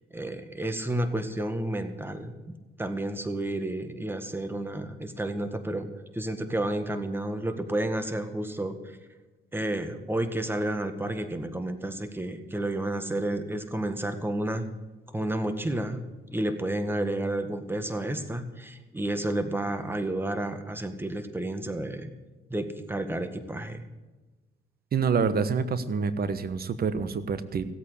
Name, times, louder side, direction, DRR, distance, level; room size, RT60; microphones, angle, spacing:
voice 1, 0.1-2.3 2.8-5.9 6.1-8.8 9.5-14.6 15.1-16.0 16.3-22.1 22.5-23.8, right 1 dB, 10° right, 8 dB, 1.8 m, -31 dB
voice 2, 24.9-27.7, right 5 dB, 50° right, 13 dB, 1.2 m, -27 dB
16.5 x 8.5 x 8.2 m, 1.2 s
cardioid pair, 90°, 20 cm